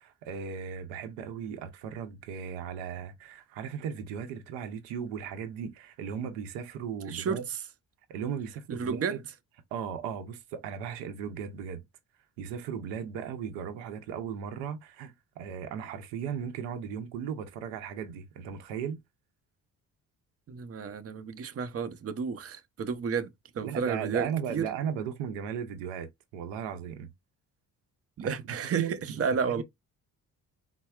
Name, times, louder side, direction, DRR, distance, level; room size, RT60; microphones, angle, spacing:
voice 1, 0.0-7.5 8.1-9.2 9.7-11.8 12.4-19.0 23.6-27.1 28.2-28.3 28.7-29.6, right 7 dB, 90° right, 0.7 m, -36 dB
voice 2, 7.1-7.4 8.7-9.2 20.5-23.3 23.5-24.7 28.2-29.6, right 6 dB, 35° right, 0.7 m, -32 dB
4.1 x 2.0 x 2.3 m
supercardioid pair, 55°, 41 cm